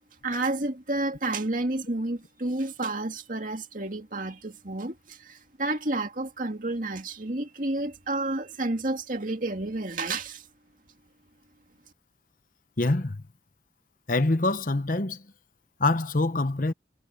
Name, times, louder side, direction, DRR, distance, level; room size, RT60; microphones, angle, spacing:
voice 1, 0.2-10.4, right 2 dB, 45° right, 2.4 m, -30 dB
voice 2, 12.8-13.2 14.1-15.2 15.8-16.7, left 2 dB, 50° left, 1.0 m, -25 dB
head